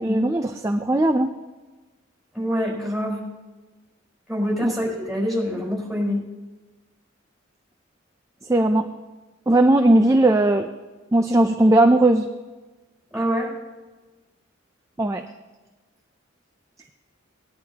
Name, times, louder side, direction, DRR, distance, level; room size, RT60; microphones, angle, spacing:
voice 1, 0.0-1.3 4.6-4.7 8.5-8.9 9.5-10.7 11.1-12.3 15.0-15.2, right 1 dB, 15° right, 5 dB, 0.4 m, -18 dB
voice 2, 2.3-3.2 4.3-6.2 13.1-13.5, equal, ahead, -3 dB, 4.4 m, -25 dB
18.5 x 10.5 x 2.9 m, 1.2 s
head